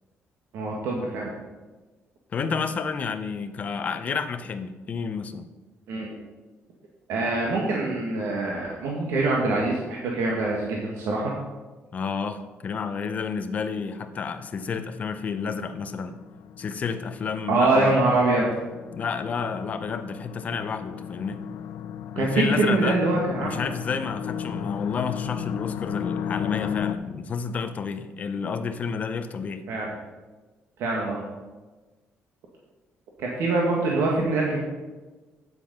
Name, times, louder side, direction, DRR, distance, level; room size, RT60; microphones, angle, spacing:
voice 1, 0.5-1.3 5.9-6.1 7.1-11.3 17.5-18.5 22.1-23.7 29.7-29.9 30.8-31.2 33.2-34.6, right 2 dB, 80° right, -2 dB, 1.8 m, -24 dB
voice 2, 2.3-5.5 11.9-16.2 16.6-18.0 18.9-21.4 22.2-23.0 23.4-29.6, left 5 dB, 35° left, 9 dB, 0.7 m, -30 dB
sound 1, 14.0-26.9, left 9 dB, 80° left, 0.7 m, -35 dB
9.2 x 8.1 x 5.3 m, 1.2 s
cardioid pair, 175°, 5 cm